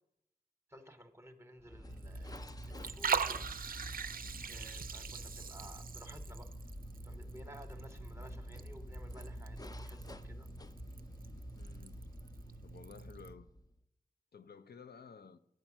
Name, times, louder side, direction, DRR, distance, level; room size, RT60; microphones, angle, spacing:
voice 1, 0.7-3.5 4.5-6.5 7.0-10.5, equal, 15° right, 7 dB, 0.9 m, -55 dB
sound 1, 1.6-13.8, equal, 25° left, 0.5 m, -48 dB
Liquid, 1.9-13.3, right 6 dB, 60° right, 0.4 m, -42 dB
voice 2, 11.6-12.0 12.6-13.5 14.3-15.4, left 5 dB, 80° left, 9 dB, 0.5 m, -54 dB
9.1 x 4.4 x 7.1 m, 0.80 s
wide cardioid pair, 55°, 17 cm